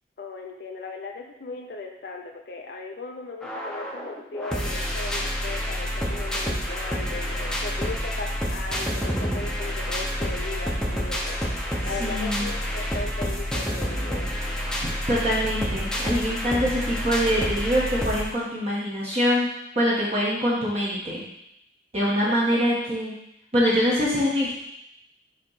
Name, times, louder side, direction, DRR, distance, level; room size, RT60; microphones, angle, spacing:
voice 1, 0.2-14.3 22.3-22.4, left 3 dB, 60° left, 2 dB, 0.6 m, -37 dB
sound 1, 3.4-18.3, equal, 5° left, 0.8 m, -28 dB
voice 2, 12.0-12.5 15.1-19.5 19.7-21.2 21.9-23.1 23.5-24.6, equal, 35° right, -7 dB, 1.3 m, -24 dB
6.3 x 3.1 x 5.6 m, 0.80 s
head